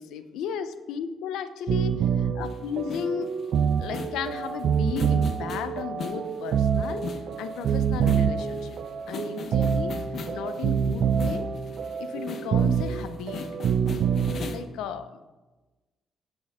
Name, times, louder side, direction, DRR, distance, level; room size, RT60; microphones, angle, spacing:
voice 1, 0.0-3.4 3.8-7.1 7.4-8.8 9.1-10.0 10.3-11.5 12.0-13.5 14.5-15.3, left 7 dB, 85° left, 11 dB, 0.7 m, -34 dB
sound 1, 1.7-14.6, right 7 dB, 65° right, 0.6 m, -26 dB
sound 2, 2.4-14.7, left 5 dB, 60° left, 1.0 m, -41 dB
16.0 x 8.0 x 3.6 m, 1.2 s
cardioid pair, 90°, 0 cm